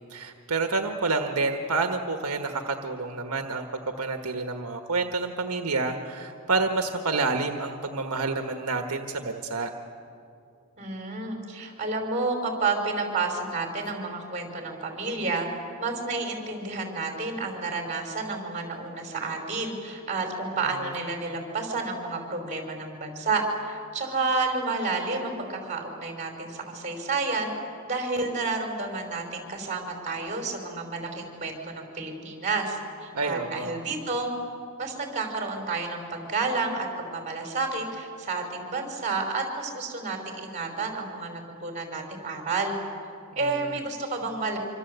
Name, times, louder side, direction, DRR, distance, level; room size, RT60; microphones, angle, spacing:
voice 1, 0.1-3.7 4.0-9.7 20.6-20.9 33.1-33.8 43.3-43.8, right 3 dB, 80° right, 5 dB, 1.5 m, -29 dB
voice 2, 10.8-15.5 15.8-27.5 27.8-34.3 34.8-42.8 43.3-44.6, right 3 dB, 35° right, 3 dB, 5.0 m, -30 dB
26.0 x 25.5 x 8.2 m, 2.4 s
head